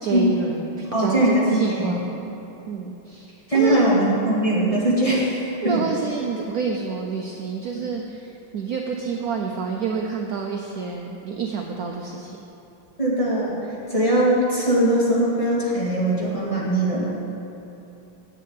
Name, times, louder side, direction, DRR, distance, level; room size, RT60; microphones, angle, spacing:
voice 1, 0.0-2.0 2.7-3.9 5.6-12.4, right 5 dB, 75° right, 1 dB, 0.8 m, -28 dB
voice 2, 0.9-2.1 3.5-5.8 7.7-7.8 13.0-17.2, right 1 dB, 15° left, -6 dB, 1.8 m, -21 dB
7.6 x 7.3 x 8.5 m, 2.9 s
omnidirectional pair, 2.3 m